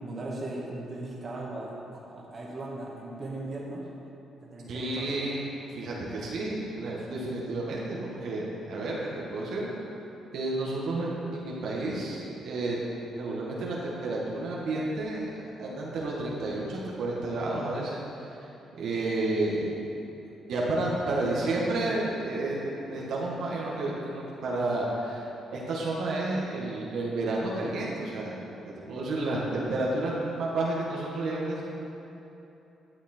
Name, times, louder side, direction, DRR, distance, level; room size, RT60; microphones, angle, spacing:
voice 1, 0.0-3.9 4.4-5.2 21.1-21.5 21.8-22.0, right 2 dB, 40° right, -4 dB, 1.9 m, -38 dB
voice 2, 4.7-5.4 5.7-9.7 10.3-12.8 13.2-15.3 15.6-18.4 18.8-19.7 20.2-25.3 25.5-28.4 28.9-31.6, right 2 dB, 70° right, -5 dB, 1.8 m, -31 dB
12.0 x 7.1 x 4.5 m, 2.9 s
cardioid pair, 90°, 0 cm